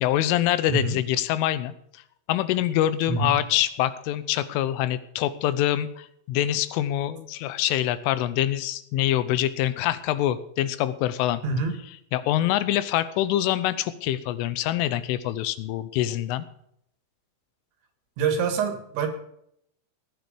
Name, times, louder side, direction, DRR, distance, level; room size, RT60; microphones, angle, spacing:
voice 1, 0.0-1.7 2.3-11.4 12.1-16.5, left 13 dB, 90° left, 14 dB, 3.4 m, -25 dB
voice 2, 0.7-1.0 3.1-3.4 11.4-11.8 18.2-19.1, right 4 dB, 70° right, 7 dB, 4.2 m, -25 dB
16.5 x 10.5 x 5.2 m, 0.72 s
omnidirectional pair, 5.5 m